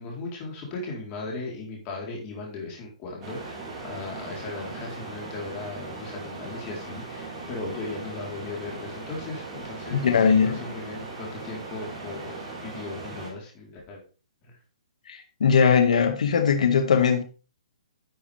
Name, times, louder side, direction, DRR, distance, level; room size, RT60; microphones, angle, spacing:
voice 1, 0.0-14.0, left 3 dB, 25° left, 3.9 m, -37 dB
sound 1, 3.2-13.3, right 3 dB, 10° right, 4.4 m, -39 dB
voice 2, 9.9-10.6 15.1-17.2, left 6 dB, 70° left, 1.9 m, -20 dB
11.5 x 6.9 x 3.5 m
hypercardioid pair, 155°, 4 cm